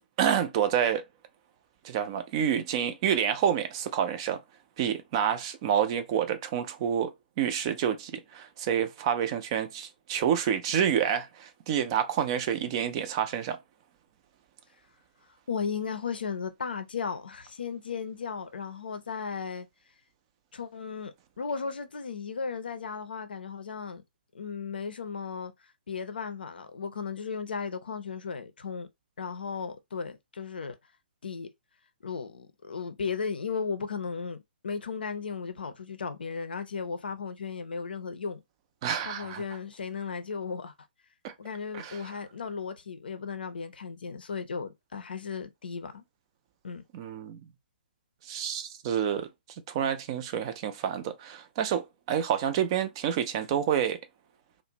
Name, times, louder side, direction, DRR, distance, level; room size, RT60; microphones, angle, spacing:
voice 1, 0.2-1.0 1.8-4.4 4.8-7.1 7.4-13.6 38.8-39.4 41.2-41.3 41.7-42.0 46.9-47.4 48.2-49.3 49.7-54.0, right 9 dB, 30° right, 0.4 m, -28 dB
voice 2, 15.5-19.7 20.5-24.0 24.3-25.5 25.9-28.9 29.2-30.8 31.2-31.5 32.0-38.4 39.1-40.7 41.4-46.0 46.6-46.8, left 5 dB, 65° left, 0.5 m, -35 dB
2.5 x 2.0 x 2.8 m
figure-of-eight pair, 130°, 6 cm